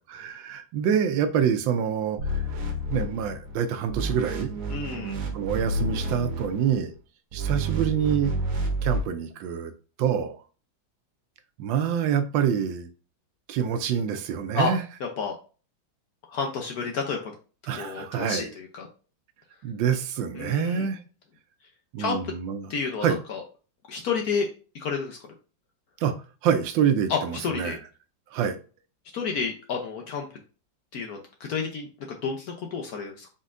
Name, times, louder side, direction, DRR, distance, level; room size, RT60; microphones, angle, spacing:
voice 1, 0.1-2.4 2.9-4.5 5.3-6.9 7.3-8.3 8.8-9.7 10.0-10.4 11.6-12.9 13.5-14.8 17.7-18.5 19.6-21.0 21.9-22.7 23.0-23.2 26.0-26.1 26.4-27.8 28.3-28.6, right 8 dB, 80° right, 9 dB, 1.3 m, -26 dB
sound 1, 2.2-3.6 3.9-6.8 7.3-9.0, right 1 dB, 55° right, 1.2 m, -30 dB
voice 2, 4.7-5.1 14.5-14.7 15.0-15.3 16.3-17.3 17.8-18.9 20.4-20.9 22.0-22.3 22.7-23.4 23.9-24.5 24.7-25.2 27.1-27.8 29.1-30.3 30.9-33.3, left 5 dB, 65° left, 2 dB, 1.0 m, -30 dB
4.2 x 4.1 x 2.5 m, 0.36 s
omnidirectional pair, 2.1 m